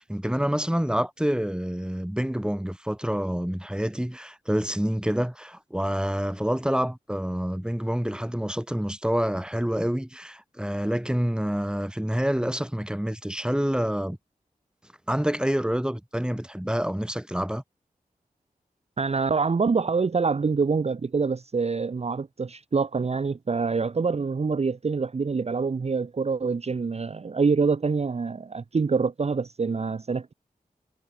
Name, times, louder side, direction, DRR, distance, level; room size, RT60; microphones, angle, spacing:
voice 1, 0.0-14.2 15.1-17.6, equal, 5° right, 3.1 m, -27 dB
voice 2, 19.0-30.3, right 4 dB, 45° right, 0.6 m, -25 dB
cardioid pair, 40°, 15 cm